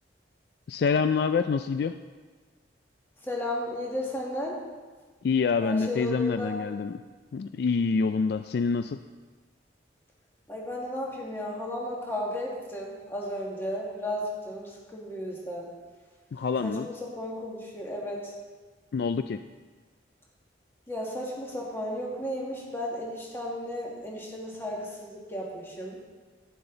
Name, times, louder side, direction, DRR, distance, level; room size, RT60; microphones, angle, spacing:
voice 1, 0.7-2.0 5.2-7.0 7.3-9.0 16.3-16.9 18.9-19.4, left 5 dB, 55° left, 10 dB, 0.3 m, -26 dB
voice 2, 3.2-4.6 5.6-6.6 10.5-15.7 16.6-18.3 20.9-26.0, left 1 dB, 15° left, -3 dB, 1.8 m, -34 dB
11.0 x 9.8 x 3.9 m, 1.4 s
head